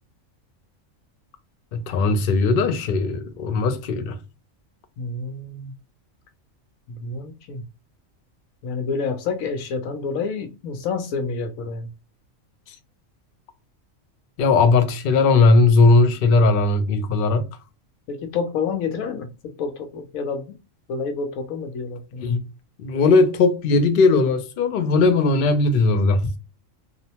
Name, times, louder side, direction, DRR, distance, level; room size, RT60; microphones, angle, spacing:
voice 1, 1.7-4.2 14.4-17.5 22.2-22.4 22.8-26.3, left 3 dB, 65° left, 0.5 m, -18 dB
voice 2, 5.0-5.7 6.9-7.7 8.6-11.9 18.1-20.6 20.9-22.4, left 5 dB, 85° left, 1.0 m, -29 dB
2.6 x 2.1 x 2.8 m
omnidirectional pair, 1.4 m